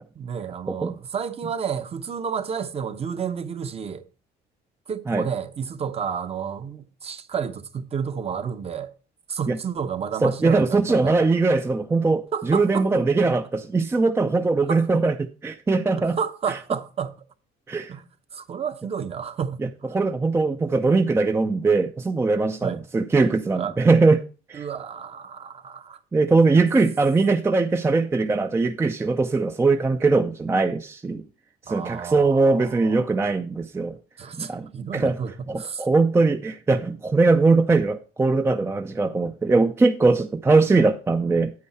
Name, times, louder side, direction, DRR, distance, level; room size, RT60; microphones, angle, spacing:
voice 1, 0.2-4.0 4.9-8.9 9.3-11.1 12.3-12.9 13.2-13.3 14.7-14.8 15.9-17.1 17.9-18.0 18.3-19.9 22.6-22.8 23.5-23.7 24.5-26.0 31.7-33.1 34.2-35.9, right 7 dB, 35° right, 0.9 m, -31 dB
voice 2, 0.7-1.0 5.1-5.3 9.5-9.6 10.2-16.2 16.5-16.6 17.7-17.9 19.9-24.2 24.5-24.7 26.1-31.2 31.7-34.0 34.4-35.2 35.5-41.5, right 3 dB, 15° right, 0.4 m, -21 dB
8.6 x 8.5 x 4.2 m
cardioid pair, 110°, 17 cm